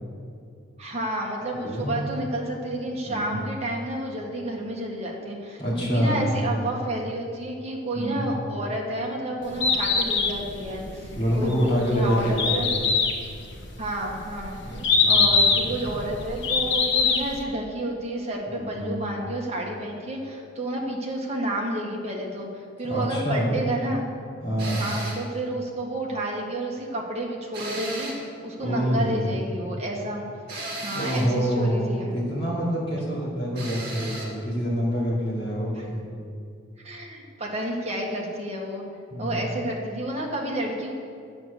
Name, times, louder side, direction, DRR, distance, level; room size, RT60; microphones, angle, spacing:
voice 1, 0.8-12.7 13.8-24.0 24.8-30.2 30.8-32.2 35.7-35.9 36.8-38.8 39.2-40.9, right 1 dB, 35° right, -2 dB, 1.7 m, -30 dB
voice 2, 1.6-2.0 3.1-3.4 5.6-6.3 7.9-8.3 11.2-12.6 14.6-15.5 18.5-18.9 22.8-23.5 24.4-24.8 28.6-29.3 30.9-36.0 39.1-39.5, equal, 30° left, -7 dB, 2.7 m, -26 dB
Bird, 9.4-17.4, left 5 dB, 60° left, 1.2 m, -23 dB
sound 1, 24.6-25.3 27.5-28.3 30.5-31.3 33.5-34.3, right 1 dB, 50° right, 2.0 m, -35 dB
9.1 x 7.8 x 6.7 m, 2.3 s
head